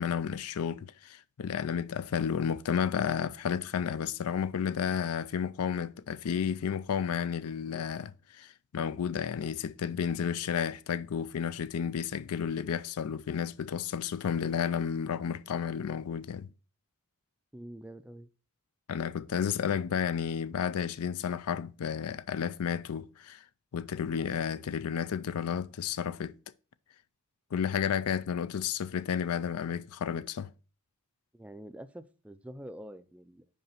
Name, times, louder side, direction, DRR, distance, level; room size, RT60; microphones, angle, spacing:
voice 1, 0.0-16.5 18.9-23.4 23.7-26.4 27.5-30.5, left 7 dB, 90° left, 0.4 m, -32 dB
voice 2, 17.5-18.3 31.3-33.5, right 1 dB, 5° right, 0.3 m, -46 dB
5.4 x 5.0 x 5.7 m
head